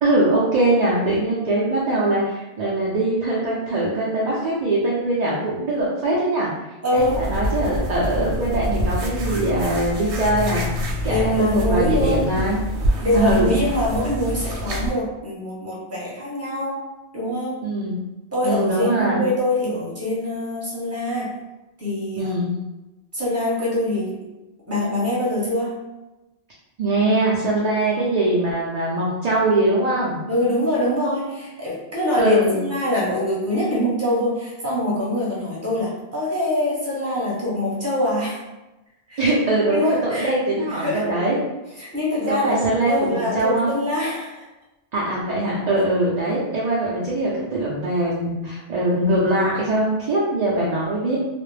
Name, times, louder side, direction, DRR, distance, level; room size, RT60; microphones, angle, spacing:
voice 1, 0.0-6.6 6.9-10.7 11.0-12.6 13.1-13.6 17.6-18.0 18.4-19.3 22.2-22.6 26.8-30.2 32.2-32.7 39.2-41.4 42.3-43.7 44.9-51.2, right 2 dB, 50° right, -6 dB, 0.5 m, -22 dB
voice 2, 6.8-7.2 11.0-12.3 13.0-16.9 17.1-17.7 18.3-21.3 21.8-22.4 23.1-24.2 24.7-25.8 30.3-38.4 39.1-39.3 39.7-40.3 40.7-41.1 41.8-44.4, left 1 dB, 15° right, -7 dB, 0.8 m, -24 dB
sound 1, 7.0-14.9, left 1 dB, 90° right, 0.9 m, -26 dB
2.4 x 2.0 x 3.1 m, 1.0 s
omnidirectional pair, 1.1 m